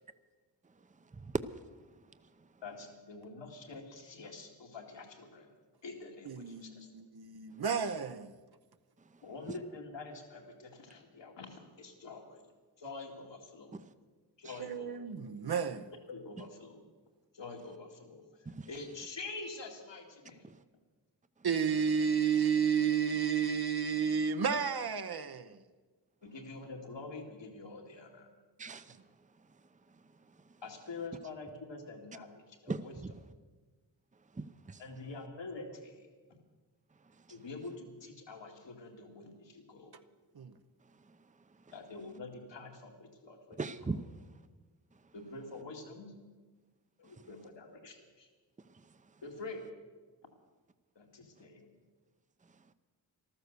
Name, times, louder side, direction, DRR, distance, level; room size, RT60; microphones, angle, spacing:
voice 1, 0.8-1.4 1.7-1.8 2.4-2.5 9.0-9.2 13.7-13.9 14.4-14.6 18.5-18.7 20.4-20.6 28.6-29.0 29.4-29.6 29.9-30.6 32.7-33.1 34.3-34.8 37.0-37.4 41.0-41.2 43.6-44.3 47.0-47.3 48.6-49.2 52.4-52.6, right 3 dB, 15° right, 0.7 m, -42 dB
voice 2, 2.6-5.5 5.8-6.9 9.2-12.4 12.8-13.7 14.4-14.9 16.1-16.8 17.3-20.4 26.2-28.3 30.6-32.9 34.8-36.1 37.3-40.0 41.7-43.6 45.1-46.1 47.0-48.3 49.2-49.7 51.0-51.7, left 3 dB, 75° left, 2.3 m, -46 dB
voice 3, 6.2-8.3 14.6-15.9 21.4-25.6 40.4-40.5, right 7 dB, 55° right, 0.9 m, -31 dB
14.0 x 12.5 x 6.9 m
cardioid pair, 45°, 44 cm